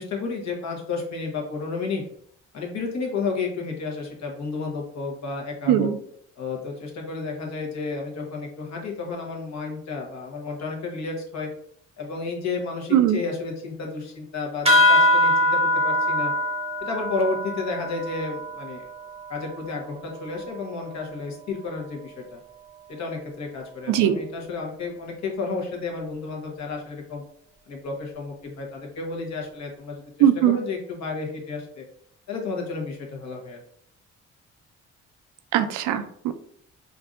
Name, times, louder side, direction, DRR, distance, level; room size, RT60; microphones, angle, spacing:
voice 1, 0.0-2.0 2.5-5.9 6.4-11.5 12.0-16.3 16.8-18.9 19.3-22.4 22.9-27.2 27.7-31.9 32.3-33.6, left 4 dB, 65° left, 0 dB, 1.2 m, -32 dB
sound 1, 14.7-19.6, left 1 dB, 20° right, 0.8 m, -22 dB
voice 2, 30.2-30.6 35.5-36.3, right 10 dB, 90° right, 10 dB, 0.5 m, -20 dB
4.6 x 2.6 x 2.5 m, 0.65 s
cardioid pair, 90°, 30 cm